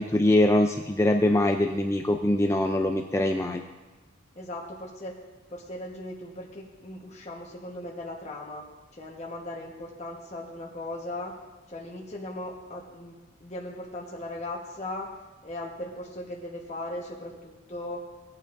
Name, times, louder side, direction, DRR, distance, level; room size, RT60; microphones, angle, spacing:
voice 1, 0.0-3.6, left 1 dB, 15° left, 5 dB, 0.4 m, -23 dB
voice 2, 4.3-5.2 5.5-11.4 11.7-15.2 15.4-18.0, left 1 dB, 35° left, -2 dB, 1.2 m, -38 dB
17.5 x 8.4 x 2.6 m, 1.2 s
head